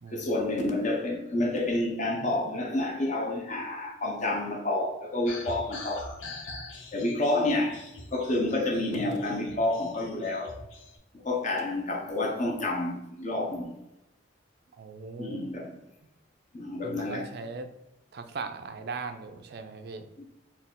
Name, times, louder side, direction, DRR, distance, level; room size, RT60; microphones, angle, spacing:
voice 1, 0.1-6.1 6.9-7.8 8.1-10.6 11.2-13.7 15.2-15.8 16.5-17.3 20.2-20.3, left 2 dB, 40° left, 0.5 m, -29 dB
sound 1, 5.3-11.0, left 2 dB, 80° left, 0.7 m, -43 dB
voice 2, 14.8-15.5 16.8-17.7 18.1-20.1, right 4 dB, 50° right, 0.4 m, -39 dB
4.0 x 2.3 x 3.6 m
head